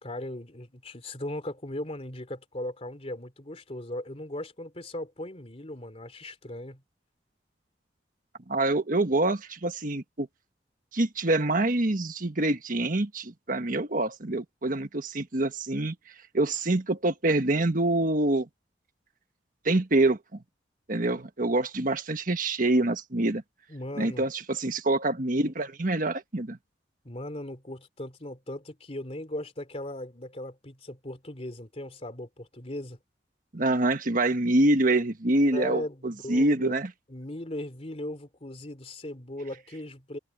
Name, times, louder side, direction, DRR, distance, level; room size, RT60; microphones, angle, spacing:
voice 1, 0.0-6.8 23.7-24.2 27.0-33.0 35.5-36.7 37.1-40.2, left 1 dB, 35° left, 2.8 m, -38 dB
voice 2, 8.5-10.3 10.9-15.9 16.3-18.5 19.6-20.4 20.9-23.4 24.0-26.6 33.5-36.9, right 2 dB, 50° right, 1.4 m, -26 dB
head